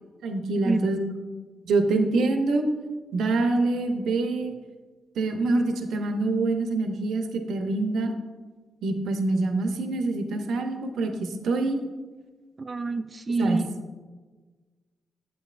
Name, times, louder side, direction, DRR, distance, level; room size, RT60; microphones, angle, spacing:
voice 1, 0.2-1.0 1.6-2.7 3.1-4.5 5.2-8.1 8.8-11.8 13.4-13.6, right 3 dB, 80° right, 5 dB, 0.6 m, -25 dB
voice 2, 12.6-13.7, right 3 dB, 35° right, 9 dB, 0.4 m, -26 dB
8.4 x 7.6 x 2.5 m, 1.4 s
cardioid pair, 65°, 0 cm